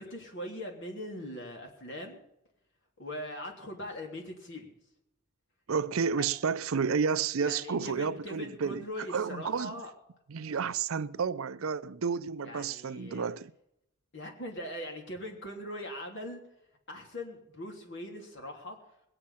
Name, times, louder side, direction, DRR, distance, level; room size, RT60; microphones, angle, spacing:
voice 1, 0.0-2.2 3.0-4.7 6.2-6.3 7.4-9.9 12.4-13.2 14.1-16.4 16.9-18.8, left 1 dB, 60° left, 3.2 m, -41 dB
voice 2, 5.7-9.8 10.3-13.5, right 6 dB, 85° right, 0.6 m, -31 dB
20.5 x 8.8 x 5.7 m
head